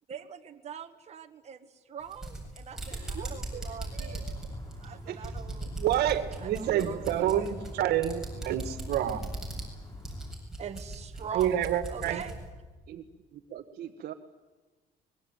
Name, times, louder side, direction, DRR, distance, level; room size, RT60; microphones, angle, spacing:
voice 1, 0.1-4.3 4.8-5.7 6.3-7.5 10.6-11.6 11.9-12.4, right 8 dB, 40° right, 5 dB, 1.6 m, -43 dB
sound 1, 2.0-12.4, right 1 dB, 5° right, 7.8 m, -39 dB
sound 2, 2.7-10.3, left 1 dB, 20° left, 4.3 m, -49 dB
voice 2, 2.9-4.5 5.1-5.4 6.6-7.3 8.3-8.4 12.9-13.0 13.3-14.1, right 10 dB, 60° right, 4 dB, 1.4 m, -43 dB
voice 3, 5.8-9.4 11.3-12.2, right 11 dB, 75° right, 11 dB, 2.0 m, -28 dB
24.5 x 22.0 x 9.2 m, 1.3 s
cardioid pair, 110°, 17 cm